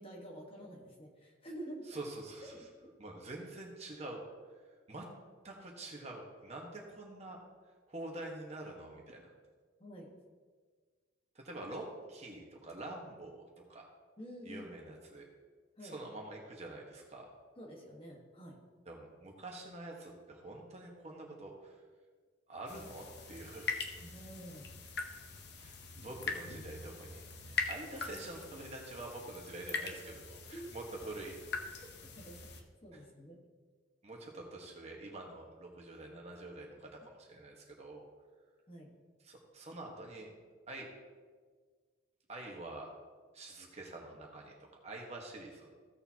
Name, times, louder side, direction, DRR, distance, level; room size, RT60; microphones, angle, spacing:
voice 1, 0.0-1.9 2.5-2.9 9.8-10.2 14.2-14.7 15.8-16.0 17.6-18.6 24.0-24.8 30.5-30.7 32.2-33.4 38.7-38.9, right 1 dB, 30° left, -1 dB, 1.4 m, -49 dB
voice 2, 1.9-2.5 3.0-4.2 4.9-5.0 5.4-7.4 7.9-9.2 11.3-13.9 14.4-15.2 15.8-17.3 18.8-21.7 22.5-23.7 25.6-25.7 26.0-31.4 31.7-31.8 34.0-38.1 39.2-40.3 40.7-40.9 42.3-42.9 43.3-45.7, right 2 dB, 35° right, 0 dB, 1.4 m, -46 dB
sound 1, 22.7-32.6, left 5 dB, 55° left, 0.9 m, -42 dB
15.5 x 6.9 x 2.9 m, 1.5 s
head